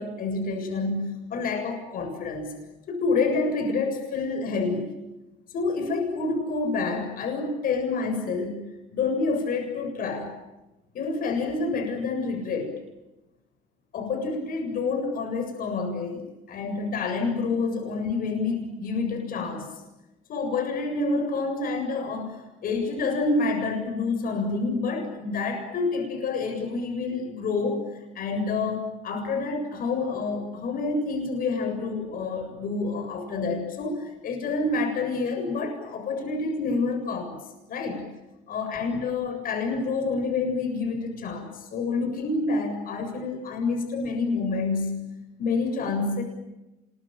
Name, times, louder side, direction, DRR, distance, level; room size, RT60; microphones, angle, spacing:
voice 1, 0.0-2.5 2.9-4.9 5.5-8.6 8.9-10.3 10.9-12.7 13.9-19.7 20.3-37.4 37.7-38.0 38.5-45.0 45.4-46.2, left 3 dB, 55° left, 4 dB, 7.3 m, -28 dB
27.0 x 22.5 x 9.0 m, 1.0 s
cardioid pair, 100°, 17 cm